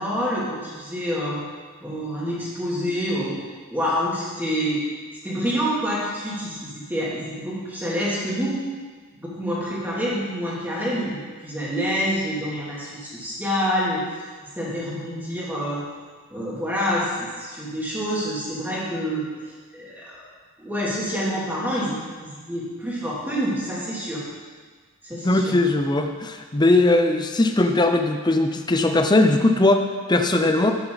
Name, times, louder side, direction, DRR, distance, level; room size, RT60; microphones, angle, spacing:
voice 1, 0.0-1.4 1.8-3.4 3.7-4.8 5.2-8.6 9.2-14.0 14.5-15.9 16.3-19.3 19.7-20.3 20.6-24.3 25.0-25.6, equal, 10° right, -7 dB, 2.8 m, -27 dB
voice 2, 25.2-30.7, left 2 dB, 20° left, 6 dB, 0.6 m, -19 dB
11.5 x 9.3 x 4.0 m, 1.5 s
head